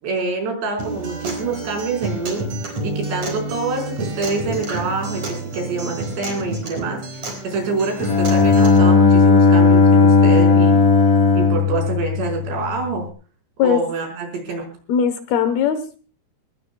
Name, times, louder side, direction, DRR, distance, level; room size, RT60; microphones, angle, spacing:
voice 1, 0.0-2.5 2.8-10.9 11.4-13.1 13.6-14.7, right 3 dB, 70° right, 2 dB, 7.3 m, -26 dB
Acoustic guitar, 0.8-8.8, right 2 dB, 40° right, 5.3 m, -29 dB
Bowed string instrument, 8.0-12.8, left 4 dB, 55° left, 4.5 m, -14 dB
voice 2, 14.9-16.0, left 8 dB, 70° left, 10 dB, 2.7 m, -19 dB
24.0 x 20.0 x 2.3 m, 0.38 s
omnidirectional pair, 5.2 m